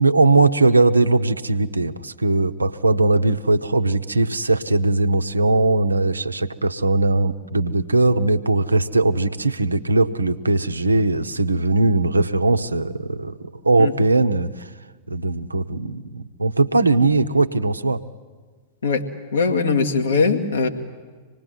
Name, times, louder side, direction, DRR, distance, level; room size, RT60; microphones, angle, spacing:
voice 1, 0.0-13.4 13.6-14.7 15.1-18.0, right 2 dB, 80° right, 9 dB, 0.8 m, -19 dB
voice 2, 19.3-20.7, left 4 dB, 70° left, 3 dB, 1.9 m, -20 dB
25.5 x 19.0 x 9.1 m, 1.4 s
figure-of-eight pair, 95°, 0 cm